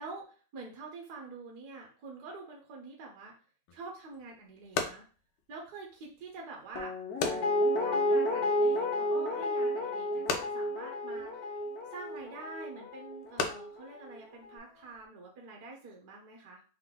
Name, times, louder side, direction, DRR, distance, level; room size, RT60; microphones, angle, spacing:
voice 1, 0.0-3.3 3.7-5.0 5.5-11.5 11.9-16.6, right 3 dB, 60° right, 0 dB, 1.2 m, -47 dB
sound 1, 3.7-15.1, left 4 dB, 85° left, 1.5 m, -41 dB
Guitar, 6.7-13.8 14.1-14.2, left 1 dB, 60° left, 1.0 m, -31 dB
3.8 x 3.4 x 3.7 m, 0.39 s
omnidirectional pair, 2.4 m